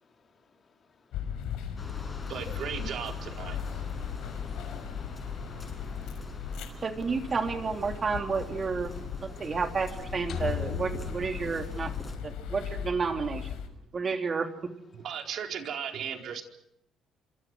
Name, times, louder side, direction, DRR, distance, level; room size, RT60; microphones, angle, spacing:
voice 1, 0.0-1.6 5.8-6.8 9.2-9.5 14.9-15.1, left 5 dB, 40° left, 4.2 m, -65 dB
sound 1, 1.1-13.7, left 8 dB, 85° left, 5.6 m, -38 dB
sound 2, 1.8-12.1, left 2 dB, 20° left, 8.0 m, -44 dB
voice 2, 2.3-3.9 14.9-16.4, right 8 dB, 60° right, 4.4 m, -36 dB
voice 3, 6.8-8.9 9.4-11.9 12.2-13.4 13.9-14.5, right 5 dB, 30° right, 3.2 m, -30 dB
sound 3, 10.3-12.6, left 7 dB, 60° left, 5.9 m, -39 dB
28.0 x 26.5 x 6.2 m
cardioid pair, 120°, 0 cm